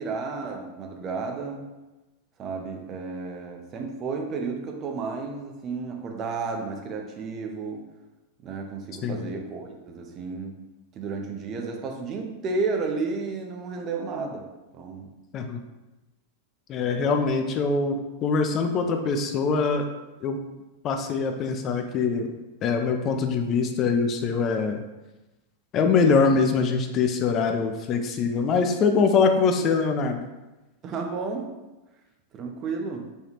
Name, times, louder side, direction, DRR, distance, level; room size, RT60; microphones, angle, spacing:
voice 1, 0.0-1.7 2.4-7.8 8.4-10.6 11.0-14.4 14.7-15.1 30.8-31.5 32.3-33.1, right 4 dB, 30° right, 3 dB, 0.5 m, -32 dB
voice 2, 16.7-19.9 20.2-20.4 20.8-22.3 22.6-24.8 25.7-30.2, left 5 dB, 30° left, 5 dB, 0.3 m, -23 dB
3.2 x 2.3 x 3.0 m, 1.1 s
figure-of-eight pair, 90°, 0 cm